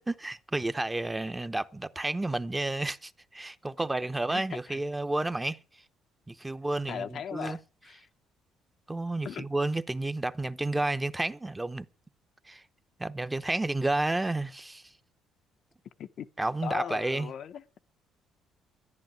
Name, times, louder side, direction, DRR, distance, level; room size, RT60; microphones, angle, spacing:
voice 1, 0.0-5.6 6.3-7.6 8.9-11.9 12.5-12.6 13.0-14.9 16.4-17.3, right 2 dB, 15° right, 0.8 m, -31 dB
voice 2, 4.3-4.8 6.9-8.0 9.2-9.5 16.0-16.3 16.6-17.8, left 8 dB, 60° left, 0.8 m, -38 dB
12.0 x 10.5 x 9.0 m
cardioid pair, 85°, 0 cm